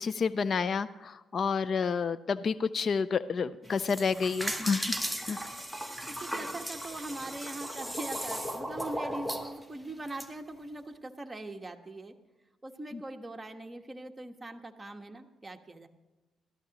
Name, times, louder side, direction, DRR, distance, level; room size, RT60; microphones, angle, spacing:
voice 1, 0.0-4.9 5.3-5.4, left 5 dB, 50° left, 16 dB, 0.4 m, -29 dB
sound 1, 3.7-10.3, equal, 5° left, 1.1 m, -36 dB
voice 2, 6.1-12.1 12.6-15.9, right 2 dB, 15° right, 4 dB, 1.2 m, -41 dB
18.0 x 13.5 x 3.0 m, 1.1 s
cardioid pair, 90°, 0 cm